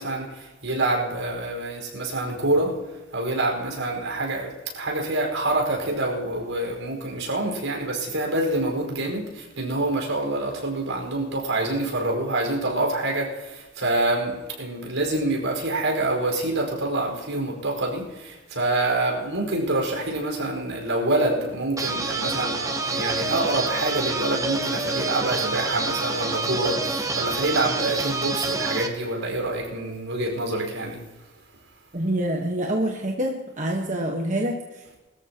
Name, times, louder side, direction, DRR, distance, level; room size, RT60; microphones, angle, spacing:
voice 1, 0.0-2.8 3.1-31.0, right 2 dB, 75° right, 0 dB, 5.1 m, -26 dB
sound 1, 21.8-28.9, right 3 dB, 15° right, 1.0 m, -27 dB
voice 2, 31.9-34.9, right 1 dB, 35° right, 0 dB, 1.4 m, -26 dB
22.5 x 14.0 x 3.0 m, 1.1 s
head